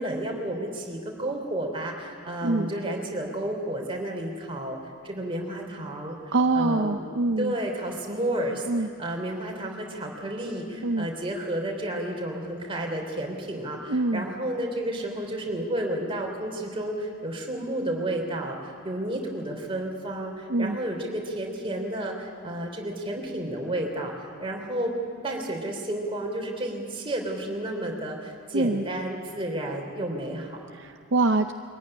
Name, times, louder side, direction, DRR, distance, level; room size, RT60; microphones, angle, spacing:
voice 1, 0.0-4.8 5.0-7.0 7.4-24.9 25.2-30.6, right 1 dB, 25° right, 1 dB, 3.3 m, -31 dB
voice 2, 6.3-7.5 8.7-8.9 10.8-11.1 13.9-14.2 20.5-20.8 28.5-28.8 30.8-31.5, right 2 dB, 50° right, 6 dB, 0.6 m, -24 dB
23.5 x 15.0 x 9.9 m, 2.2 s
head